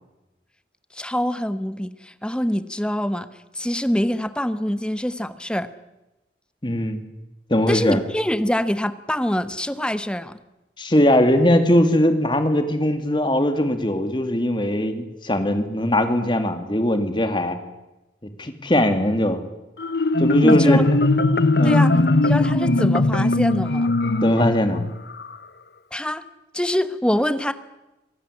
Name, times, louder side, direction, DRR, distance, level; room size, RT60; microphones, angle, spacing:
voice 1, 0.9-3.3 3.5-5.7 7.7-10.4 20.4-20.9 21.6-23.9 25.9-26.2 26.5-27.5, equal, 5° left, 12 dB, 1.0 m, -25 dB
voice 2, 6.6-7.0 7.5-8.0 10.8-17.6 18.4-19.4 20.2-20.8 21.6-22.0 24.2-24.8, left 1 dB, 25° left, 7 dB, 2.4 m, -20 dB
Marimba xylophone, 19.8-25.3, left 2 dB, 65° left, 0.9 m, -19 dB
26.0 x 17.0 x 9.8 m, 1.0 s
head